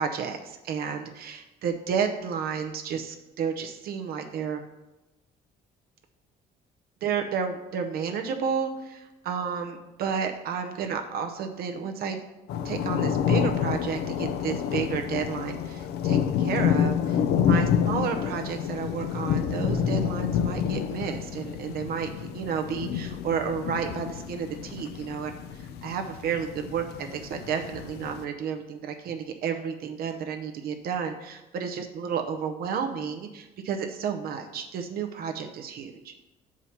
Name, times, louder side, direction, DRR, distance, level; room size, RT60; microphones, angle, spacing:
voice 1, 0.0-4.6 7.0-12.2 12.6-36.1, right 6 dB, 65° right, 5 dB, 0.7 m, -31 dB
sound 1, 12.5-28.2, left 8 dB, 75° left, 0.5 m, -28 dB
5.7 x 4.9 x 5.7 m, 0.99 s
cardioid pair, 110°, 17 cm